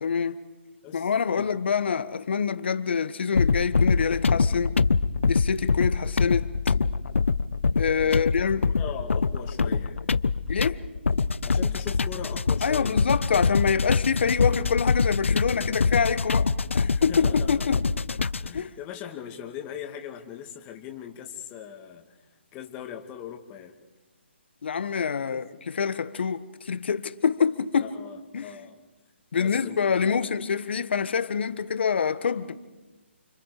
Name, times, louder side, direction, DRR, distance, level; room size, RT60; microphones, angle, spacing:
voice 1, 0.0-0.4 0.9-4.8 5.3-6.7 7.7-8.7 10.5-10.8 12.6-17.8 18.5-18.8 24.6-27.9 28.3-28.5 29.3-32.6, left 6 dB, 60° left, 1.5 m, -26 dB
voice 2, 0.8-1.5 8.0-8.4 8.8-10.0 11.4-13.0 16.8-17.8 18.4-22.2 22.5-23.8 25.2-25.4 27.8-28.8 29.4-30.3, left 9 dB, 20° left, 2.2 m, -40 dB
sound 1, 3.3-18.6, left 4 dB, 90° left, 0.7 m, -24 dB
30.0 x 25.5 x 5.0 m
hypercardioid pair, 155°, 7 cm